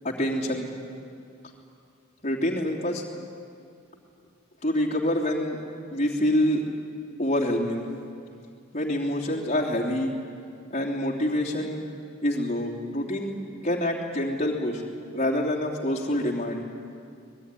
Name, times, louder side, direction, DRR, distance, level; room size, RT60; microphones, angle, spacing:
voice 1, 0.0-0.7 2.2-3.0 4.6-5.6 5.9-6.7 7.2-7.8 8.7-10.1 10.7-11.9 12.2-14.8 15.1-16.6, left 1 dB, 30° left, -3 dB, 3.1 m, -26 dB
25.5 x 20.5 x 9.9 m, 2.5 s
head